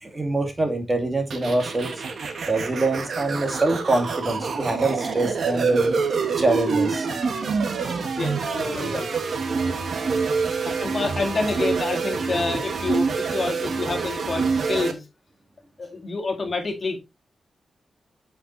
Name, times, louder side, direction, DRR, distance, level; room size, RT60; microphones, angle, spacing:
voice 1, 0.0-1.9 2.5-5.9 6.4-7.1 14.4-14.5, right 2 dB, 25° right, 2.0 m, -24 dB
sound 1, 1.3-14.9, right 5 dB, 70° right, 1.3 m, -26 dB
voice 2, 8.2-9.1 9.6-10.0 10.3-10.4 10.6-15.1 15.8-17.0, left 3 dB, 50° left, 2.1 m, -28 dB
8.2 x 5.4 x 3.1 m
cardioid pair, 75°, 0 cm